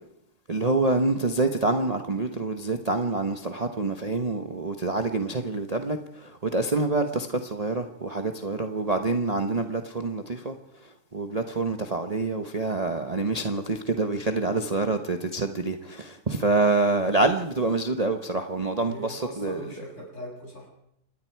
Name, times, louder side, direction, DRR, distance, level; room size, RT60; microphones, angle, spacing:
voice 1, 0.5-19.6, right 3 dB, 25° right, 5 dB, 1.0 m, -26 dB
voice 2, 18.8-20.7, equal, 45° left, -1 dB, 6.9 m, -40 dB
27.0 x 20.5 x 4.7 m, 0.77 s
omnidirectional pair, 1.7 m